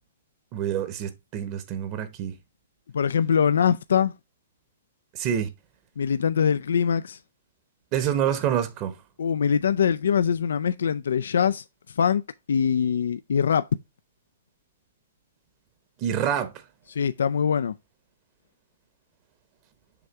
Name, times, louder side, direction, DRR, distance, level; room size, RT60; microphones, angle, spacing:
voice 1, 0.5-2.4 5.1-5.5 7.9-9.0 16.0-16.5, right 9 dB, 35° right, 1.0 m, -27 dB
voice 2, 2.9-4.1 6.0-7.2 9.2-11.6 12.0-12.2 12.5-13.6 16.9-17.7, left 7 dB, 70° left, 0.3 m, -23 dB
6.9 x 3.3 x 4.7 m
hypercardioid pair, 125°, 0 cm